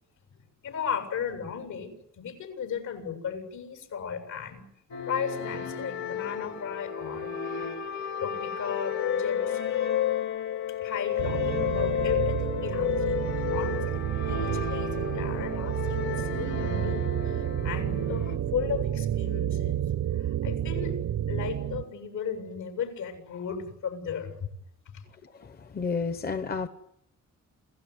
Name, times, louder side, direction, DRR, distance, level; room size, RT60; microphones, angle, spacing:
voice 1, 0.6-4.6 5.1-7.3 8.2-9.6 10.8-19.8 20.2-21.0 21.3-24.3 24.9-25.0, left 7 dB, 85° left, 7.6 m, -35 dB
sound 1, 4.9-18.4, left 8 dB, 65° left, 2.7 m, -31 dB
sound 2, 11.2-21.8, right 11 dB, 85° right, 1.1 m, -30 dB
voice 2, 25.2-26.7, left 5 dB, 30° left, 1.0 m, -31 dB
28.5 x 17.0 x 9.8 m
wide cardioid pair, 180°, 30 cm